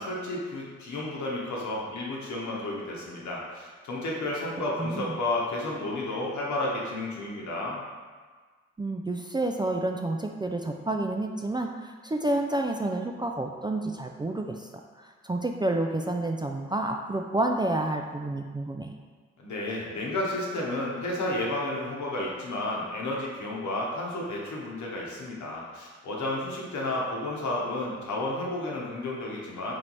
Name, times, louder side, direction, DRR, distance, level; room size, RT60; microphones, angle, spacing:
voice 1, 0.0-7.9 19.4-29.7, left 2 dB, 70° left, -3 dB, 1.0 m, -32 dB
voice 2, 4.8-5.1 8.8-14.7 15.0-18.9, right 2 dB, 15° right, 3 dB, 0.3 m, -29 dB
3.2 x 3.1 x 4.0 m, 1.5 s
supercardioid pair, 45°, 30 cm